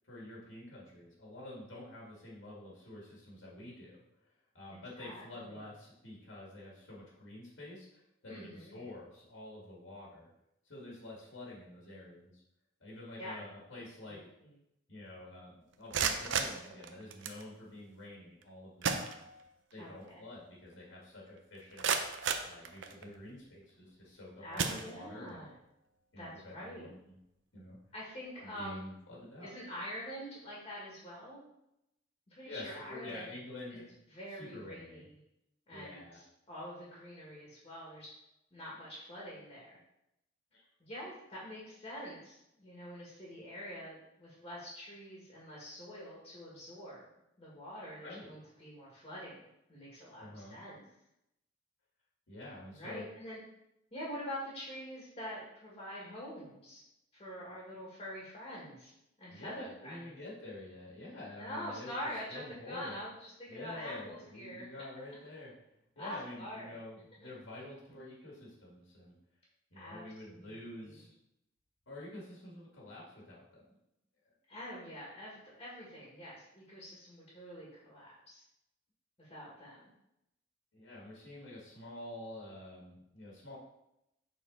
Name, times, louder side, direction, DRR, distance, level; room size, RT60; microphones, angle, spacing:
voice 1, 0.0-4.0 4.5-10.3 10.6-12.3 12.8-14.2 14.9-19.3 19.7-21.9 22.4-25.5 26.1-27.2 27.5-27.8 28.4-29.5 32.4-33.9 34.3-35.1 35.7-36.2 40.5-40.6 48.0-48.3 50.2-50.6 52.3-53.1 59.3-62.0 62.3-63.0 63.5-65.5 66.0-69.2 69.7-71.2 71.9-73.7 74.3-74.4 80.7-83.6, left 1 dB, 75° left, -4 dB, 2.0 m, -48 dB
voice 2, 5.0-5.6 8.3-8.8 13.2-13.4 14.0-14.5 19.8-20.2 24.4-25.5 26.2-26.9 27.9-28.9 29.4-31.4 32.3-33.2 34.1-35.2 35.7-38.1 38.5-39.8 40.8-47.1 47.4-50.8 52.7-53.4 53.9-56.8 57.1-58.9 59.2-60.1 61.3-62.4 62.7-64.7 66.0-66.8 69.7-70.0 70.3-71.0 74.5-78.4 79.2-79.8, equal, 30° left, -6 dB, 1.8 m, -45 dB
sound 1, 15.7-17.4 18.4-18.5 18.8-19.7 20.1-20.2 20.7-20.8 21.4-23.2 23.9-24.1 24.5-25.4, right 6 dB, 65° right, 0.6 m, -35 dB
6.9 x 4.1 x 3.9 m, 0.85 s
head